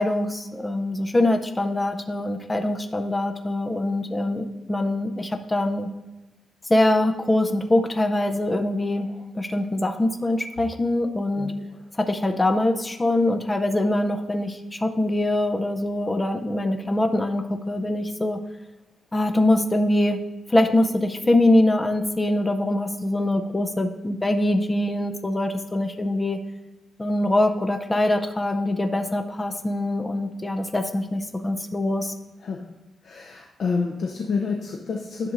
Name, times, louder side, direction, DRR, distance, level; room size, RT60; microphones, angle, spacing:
voice 1, 0.0-5.9 6.7-9.1 9.3-11.5 12.0-18.4 19.1-20.2 20.5-26.4 27.0-32.1, left 1 dB, 15° left, 6 dB, 0.5 m, -23 dB
voice 2, 33.0-35.3, left 4 dB, 55° left, 1 dB, 0.6 m, -28 dB
10.5 x 6.7 x 2.5 m, 1.1 s
wide cardioid pair, 175°, 0 cm